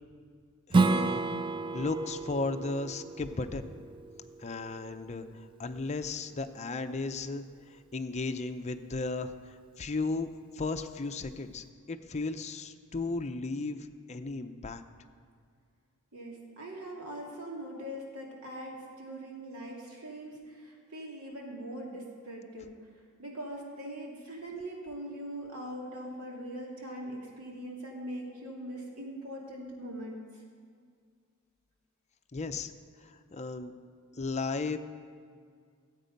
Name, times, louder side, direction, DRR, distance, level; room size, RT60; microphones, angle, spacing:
voice 1, 0.7-1.3 1.7-3.7 4.4-14.8 32.3-32.7 33.0-33.7 34.1-34.8, left 3 dB, 30° left, 7 dB, 0.6 m, -35 dB
Strum, 0.7-5.9, right 3 dB, 20° right, 0.3 m, -31 dB
voice 2, 16.1-22.7 23.2-30.2, right 1 dB, 75° right, -2 dB, 2.7 m, -41 dB
17.0 x 8.2 x 5.3 m, 2.1 s
head